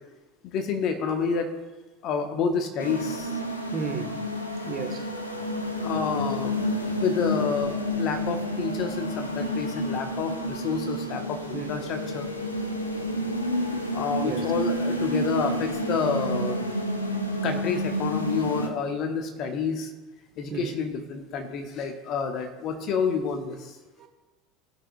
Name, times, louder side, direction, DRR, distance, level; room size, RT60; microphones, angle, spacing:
voice 1, 0.4-1.5 2.0-3.4 5.8-6.7 7.0-12.3 13.9-16.6 17.4-19.9 20.4-23.7, left 5 dB, 45° left, 1.1 m, -29 dB
sound 1, 2.8-18.7, equal, 85° left, 0.7 m, -30 dB
voice 2, 3.7-4.2 4.7-5.1 11.5-11.7 14.2-14.4 20.5-20.7 24.0-24.1, right 6 dB, 35° right, 1.3 m, -32 dB
17.5 x 6.3 x 2.4 m
figure-of-eight pair, 70°, 0 cm